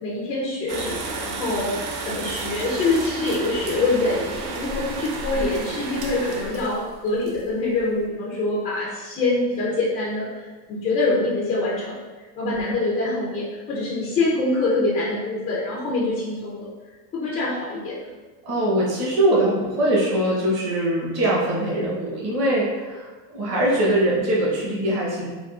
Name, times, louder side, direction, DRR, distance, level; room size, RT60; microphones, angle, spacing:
voice 1, 0.0-12.0 12.4-16.7 17.1-18.0, left 2 dB, 15° left, -5 dB, 0.3 m, -25 dB
sound 1, 0.7-8.0, right 3 dB, 70° right, 0.6 m, -32 dB
voice 2, 18.4-25.3, right 1 dB, 35° right, -6 dB, 0.9 m, -22 dB
3.5 x 2.2 x 2.4 m, 1.3 s
supercardioid pair, 130°, 47 cm